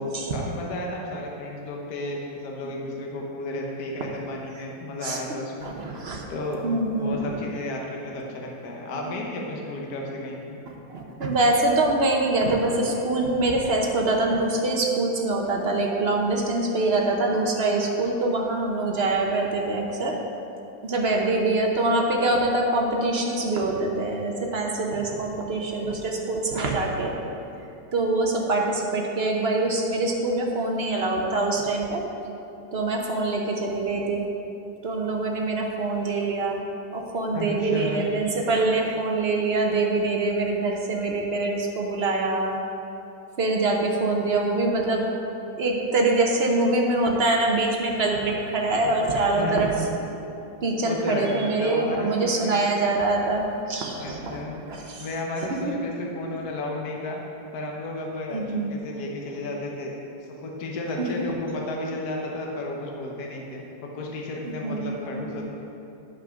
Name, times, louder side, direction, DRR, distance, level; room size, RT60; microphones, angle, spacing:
voice 1, 0.0-6.0 6.3-6.6 7.0-10.6 37.3-38.0 49.4-49.7 50.8-52.5 54.0-57.2 57.5-59.9 60.2-65.5, left 2 dB, 60° left, -1 dB, 1.4 m, -33 dB
voice 2, 5.6-6.2 6.6-7.3 9.0-9.1 10.9-20.1 20.8-27.1 27.9-32.0 32.7-34.2 34.8-36.6 36.9-42.6 43.4-45.0 45.6-49.7 50.6-54.4 54.7-55.0 58.3-58.7 64.6-65.5, right 2 dB, 50° right, 0 dB, 0.8 m, -24 dB
10.0 x 5.9 x 5.1 m, 2.9 s
omnidirectional pair, 2.1 m